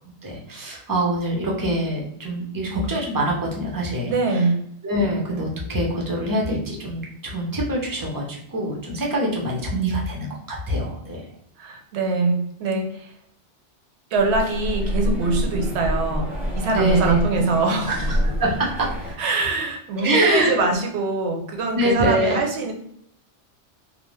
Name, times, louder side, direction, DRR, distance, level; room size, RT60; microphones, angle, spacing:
voice 1, 0.2-4.4 4.8-11.2 16.7-17.2 17.9-19.2 20.0-20.5 21.8-22.4, right 1 dB, 30° right, -2 dB, 0.4 m, -25 dB
voice 2, 4.1-4.6 11.6-13.1 14.1-18.2 19.2-22.7, right 3 dB, 70° right, 3 dB, 0.8 m, -23 dB
sound 1, 14.1-19.1, equal, ahead, 0.7 m, -27 dB
2.5 x 2.0 x 3.0 m, 0.71 s
omnidirectional pair, 1.2 m